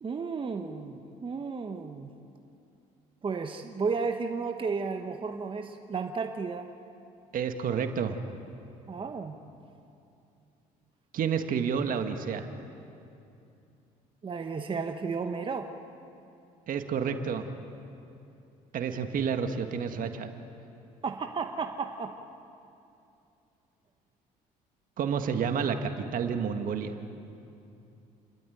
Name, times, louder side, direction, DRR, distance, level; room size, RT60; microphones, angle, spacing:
voice 1, 0.0-2.1 3.2-6.7 8.9-9.4 14.2-15.7 21.0-22.2, right 5 dB, 35° right, 5 dB, 1.1 m, -33 dB
voice 2, 7.3-8.2 11.1-12.5 16.7-17.5 18.7-20.3 25.0-26.9, right 6 dB, 60° right, 7 dB, 1.7 m, -30 dB
29.5 x 12.0 x 9.3 m, 2.7 s
supercardioid pair, 80°, 16 cm